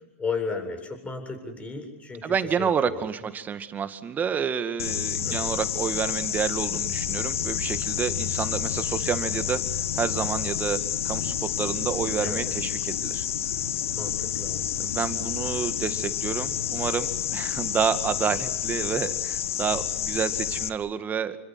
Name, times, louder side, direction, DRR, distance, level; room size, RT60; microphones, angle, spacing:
voice 1, 0.2-3.0 5.2-5.5 12.2-12.6 13.9-14.7, left 4 dB, 15° left, 5 dB, 7.8 m, -34 dB
voice 2, 2.2-13.3 14.8-21.4, right 7 dB, 25° right, 10 dB, 2.1 m, -29 dB
sound 1, 4.8-20.7, left 10 dB, 80° left, 1.7 m, -29 dB
29.5 x 24.5 x 7.8 m, 0.81 s
hypercardioid pair, 115°, 7 cm